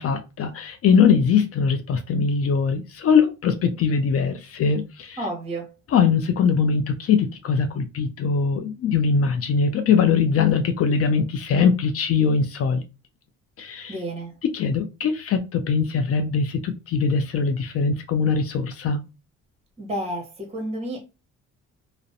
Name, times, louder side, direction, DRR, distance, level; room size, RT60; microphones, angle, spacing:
voice 1, 0.0-5.2 5.9-12.8 13.6-13.9 14.5-19.0, left 6 dB, 50° left, 0.4 m, -21 dB
voice 2, 5.2-5.7 13.9-14.3 19.8-21.0, right 1 dB, 20° right, 0.9 m, -30 dB
2.4 x 2.0 x 2.6 m
cardioid pair, 90°, 30 cm